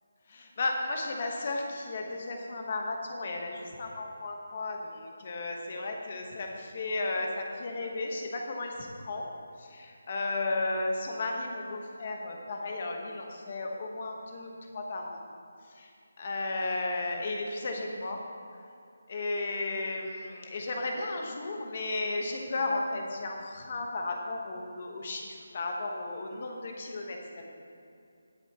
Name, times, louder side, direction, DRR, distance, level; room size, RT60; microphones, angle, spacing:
voice 1, 0.3-9.3 9.6-15.2 15.7-15.9 16.2-18.2 19.1-27.5, left 2 dB, 30° left, 2 dB, 1.1 m, -34 dB
17.0 x 7.9 x 2.9 m, 2.6 s
hypercardioid pair, 180°, 0 cm